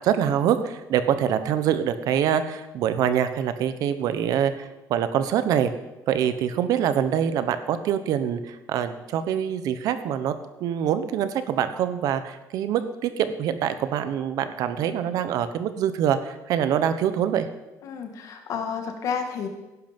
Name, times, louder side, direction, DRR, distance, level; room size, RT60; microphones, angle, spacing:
voice 1, 0.0-5.7 6.1-10.3 10.6-17.5, right 9 dB, 65° right, 11 dB, 1.2 m, -25 dB
voice 2, 17.8-19.5, left 6 dB, 55° left, 5 dB, 2.3 m, -30 dB
16.5 x 11.0 x 5.5 m, 1.0 s
cardioid pair, 160°, 7 cm